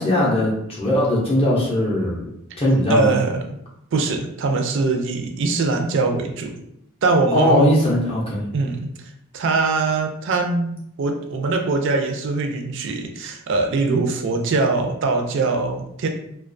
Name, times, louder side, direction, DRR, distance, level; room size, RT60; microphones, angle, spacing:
voice 1, 0.0-2.2 2.6-3.1 7.3-8.5, left 1 dB, 25° left, -5 dB, 0.5 m, -19 dB
voice 2, 2.9-3.4 3.9-6.5 7.0-7.7 8.5-8.9 9.3-16.1, right 3 dB, 55° right, 4 dB, 0.4 m, -22 dB
2.3 x 2.2 x 2.5 m, 0.77 s
head